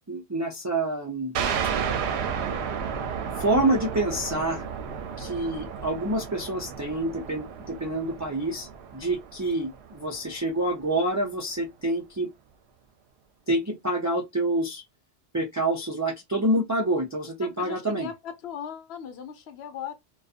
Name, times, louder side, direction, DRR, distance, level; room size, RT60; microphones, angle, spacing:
voice 1, 0.1-1.3 3.4-4.6 5.2-12.3 13.5-14.8 15.3-18.1, right 1 dB, 25° right, 0.4 m, -27 dB
sound 1, 1.3-10.6, right 7 dB, 75° right, 0.8 m, -33 dB
voice 2, 17.4-19.9, left 8 dB, 70° left, 0.8 m, -38 dB
2.5 x 2.3 x 2.4 m
omnidirectional pair, 1.1 m